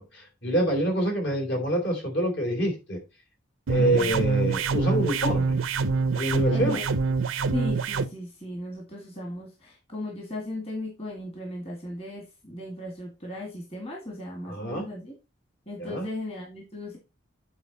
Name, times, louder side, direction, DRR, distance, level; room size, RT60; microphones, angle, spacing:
voice 1, 0.0-3.0 3.7-5.6 6.1-6.8 14.5-14.9 15.8-16.1, right 1 dB, 60° left, 3 dB, 3.1 m, -26 dB
sound 1, 3.7-8.1, right 4 dB, 75° right, 0.6 m, -25 dB
voice 2, 3.8-4.2 6.5-6.9 7.5-15.1 15.7-17.0, left 1 dB, 30° left, 0 dB, 2.0 m, -36 dB
8.7 x 4.4 x 4.1 m, 0.27 s
head